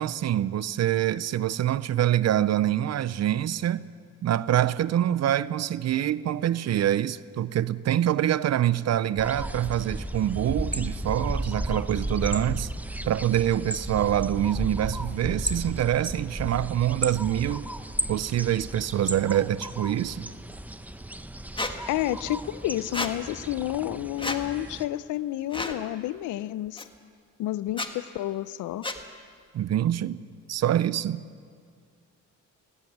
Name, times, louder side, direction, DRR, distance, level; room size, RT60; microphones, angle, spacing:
voice 1, 0.0-3.9 4.2-12.7 13.0-17.7 18.1-20.3 29.5-30.2 30.5-31.2, right 11 dB, 60° right, 0.7 m, -25 dB
sound 1, 9.2-24.9, right 1 dB, 5° right, 0.9 m, -34 dB
Squeak, 21.6-21.7 22.9-23.1 24.2-24.4 25.5-25.8 26.8-26.9 27.7-27.9 28.8-29.0, left 2 dB, 15° left, 1.7 m, -30 dB
voice 2, 21.9-26.8 27.4-28.9, left 14 dB, 85° left, 0.7 m, -30 dB
18.5 x 18.0 x 9.4 m
cardioid pair, 90°, 30 cm